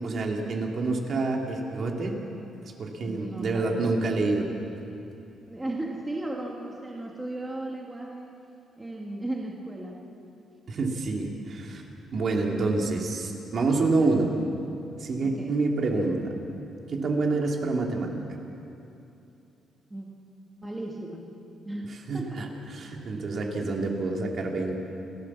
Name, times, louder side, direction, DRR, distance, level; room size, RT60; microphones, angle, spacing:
voice 1, 0.0-2.2 2.8-4.5 10.7-11.8 12.1-14.3 15.0-16.2 16.9-18.1 22.1-22.5 22.7-24.9, right 3 dB, 45° right, 1 dB, 2.4 m, -27 dB
voice 2, 3.0-3.9 5.5-8.3 8.8-10.0 15.2-15.6 19.9-20.1 20.6-21.2 21.6-22.5, right 1 dB, 10° right, -1 dB, 1.6 m, -36 dB
29.0 x 13.5 x 7.2 m, 2.8 s
cardioid pair, 165°, 0 cm